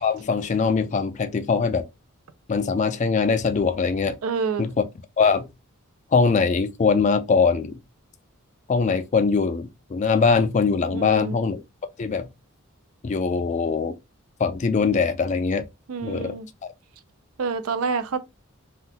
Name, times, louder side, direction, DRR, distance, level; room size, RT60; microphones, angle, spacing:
voice 1, 0.0-1.9 2.5-4.2 4.6-4.8 5.2-5.5 6.1-7.8 8.7-11.6 12.0-12.3 13.0-14.0 14.4-15.6 16.0-16.4, left 5 dB, 35° left, 0.3 m, -22 dB
voice 2, 4.2-4.6 10.9-11.4 15.9-16.5 17.4-18.2, right 5 dB, 85° right, 0.5 m, -27 dB
3.7 x 2.2 x 2.7 m
head